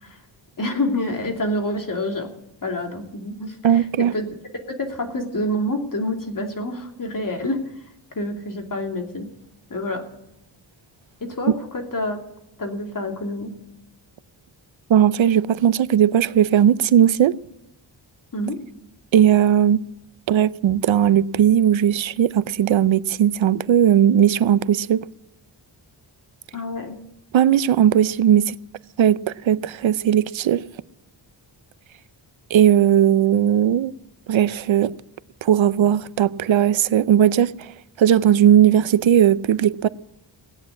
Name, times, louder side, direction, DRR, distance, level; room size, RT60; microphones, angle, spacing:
voice 1, 0.6-2.3 2.6-4.3 4.7-7.6 8.1-9.3 9.7-10.0 11.2-12.2 12.6-13.5 18.3-18.6 26.5-26.9, left 1 dB, 45° left, 2.9 m, -27 dB
voice 2, 3.6-4.1 14.9-17.4 19.1-19.8 20.3-25.0 27.3-28.5 29.0-29.2 29.4-30.6 32.5-33.9 34.3-34.9 35.4-37.7 38.0-39.9, right 10 dB, 85° right, 0.6 m, -17 dB
16.5 x 9.7 x 8.3 m
wide cardioid pair, 105°, 46 cm